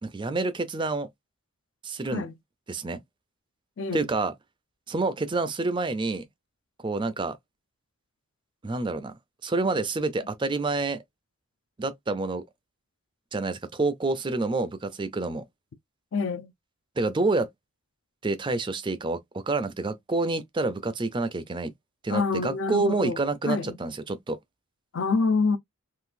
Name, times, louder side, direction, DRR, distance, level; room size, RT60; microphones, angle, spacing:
voice 1, 0.0-1.1 1.8-2.3 2.7-3.0 3.9-4.3 4.9-6.2 6.8-7.4 8.6-9.1 9.4-11.0 11.8-12.4 13.3-15.4 17.0-17.5 18.2-21.7 22.0-24.4, right 3 dB, 20° right, 0.4 m, -28 dB
voice 2, 3.8-4.1 16.1-16.5 22.1-23.2 23.5-23.8 24.9-25.6, left 4 dB, 60° left, 0.5 m, -26 dB
3.7 x 2.5 x 2.5 m
head